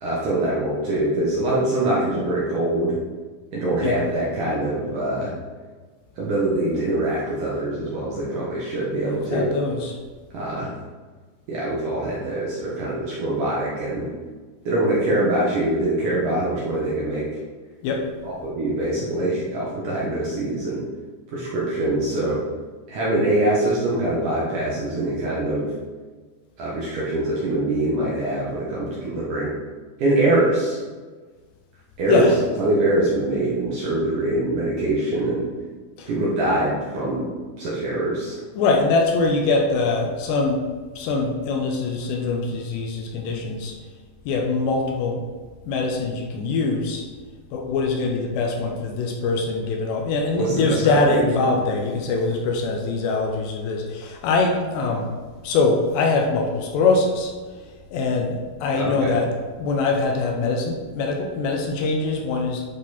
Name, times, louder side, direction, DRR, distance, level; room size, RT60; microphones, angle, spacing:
voice 1, 0.0-3.0 3.5-5.3 6.2-9.5 10.3-10.7 11.5-14.1 14.7-17.3 18.2-20.8 21.3-22.4 22.9-25.7 26.6-29.5 30.0-30.8 32.0-32.3 32.6-35.5 36.1-37.3 37.6-38.4 50.3-51.3 51.5-51.7 58.7-59.1, right 1 dB, 60° right, -6 dB, 2.3 m, -23 dB
voice 2, 8.9-10.0 17.8-18.0 32.1-32.4 36.0-36.1 38.6-40.6 41.0-43.7 44.3-45.2 45.7-47.0 47.5-55.2 55.4-57.3 57.6-57.7 57.9-59.3 59.6-62.6, left 3 dB, 75° left, 2 dB, 2.9 m, -23 dB
11.0 x 4.7 x 4.1 m, 1.4 s
omnidirectional pair, 5.2 m